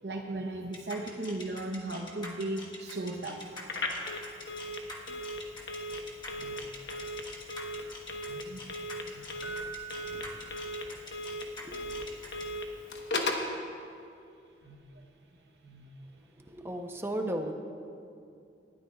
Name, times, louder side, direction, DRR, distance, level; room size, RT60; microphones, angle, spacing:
voice 1, 0.0-3.4 6.4-6.6 8.3-8.7 9.1-9.2 14.6-14.8 15.6-15.9, right 2 dB, 70° right, 0 dB, 0.8 m, -37 dB
sound 1, 0.7-12.4, left 2 dB, 25° left, 1.3 m, -45 dB
Telephone, 3.6-13.5, left 1 dB, 70° left, 1.1 m, -37 dB
Keyboard (musical), 9.4-11.4 14.6-14.8, right 5 dB, 90° left, 0.7 m, -45 dB
voice 2, 16.3-17.5, right 1 dB, 15° right, 4 dB, 0.7 m, -36 dB
19.5 x 12.5 x 2.4 m, 2.4 s
head